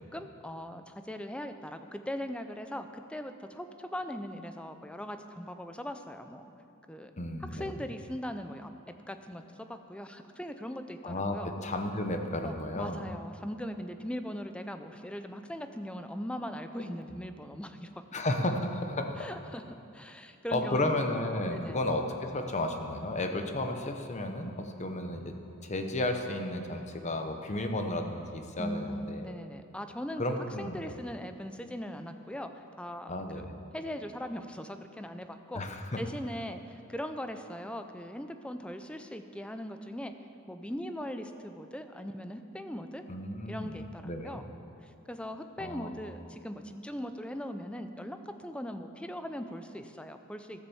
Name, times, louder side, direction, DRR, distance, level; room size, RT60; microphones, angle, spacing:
voice 1, 0.1-6.4 6.9-7.1 7.4-8.7 9.1-11.5 12.4-17.9 19.2-19.6 19.9-20.9 21.3-21.8 28.6-33.5 33.7-35.6 36.0-40.1 40.5-43.0 43.5-44.4 44.8-50.7, equal, 5° left, 8 dB, 0.5 m, -40 dB
voice 2, 7.2-7.8 11.0-13.0 18.1-19.3 20.5-25.3 25.6-29.4 30.2-31.0 33.1-33.6 35.5-36.0 43.1-44.4 45.6-45.9, left 1 dB, 35° left, 5 dB, 0.9 m, -33 dB
13.5 x 7.1 x 7.0 m, 2.6 s
head